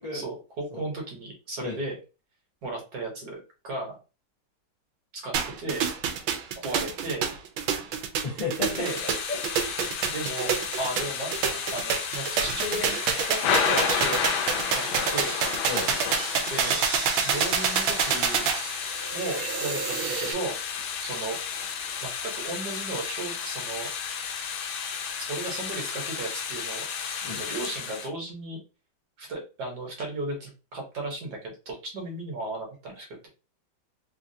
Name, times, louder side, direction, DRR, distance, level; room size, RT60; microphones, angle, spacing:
voice 1, 0.1-2.0 2.6-3.4 3.6-3.9 5.2-5.9 6.6-7.3 8.8-9.0 10.0-11.4 11.7-14.3 14.7-15.3 16.5-16.8 17.2-18.5 19.1-20.5 21.0-21.4 22.0-23.9 25.2-26.8 27.3-28.6 29.2-33.3, right 2 dB, 60° right, 0 dB, 1.5 m, -35 dB
sound 1, 5.3-20.3, right 7 dB, 80° right, 1.3 m, -28 dB
voice 2, 8.2-9.4 15.6-15.9 27.2-27.4, left 3 dB, 40° left, -5 dB, 0.5 m, -33 dB
Thunder / Rain, 8.6-28.1, left 7 dB, 85° left, 1.4 m, -32 dB
3.6 x 2.3 x 2.7 m, 0.32 s
omnidirectional pair, 2.1 m